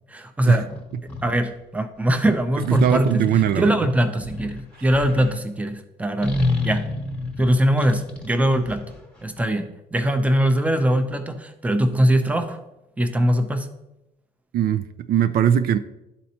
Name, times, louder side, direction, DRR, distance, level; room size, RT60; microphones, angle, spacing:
voice 1, 0.1-0.7 1.2-3.2 3.6-6.4 6.6-6.9 7.4-8.9 9.2-12.6 13.0-13.7, right 1 dB, 10° right, 7 dB, 0.6 m, -21 dB
sound 1, 0.7-1.4 2.6-5.3 6.2-9.4, left 2 dB, 5° left, 1.1 m, -29 dB
voice 2, 2.7-3.8 14.5-15.8, right 9 dB, 65° right, 11 dB, 0.4 m, -20 dB
11.0 x 4.2 x 2.9 m, 0.92 s
cardioid pair, 110°, 17 cm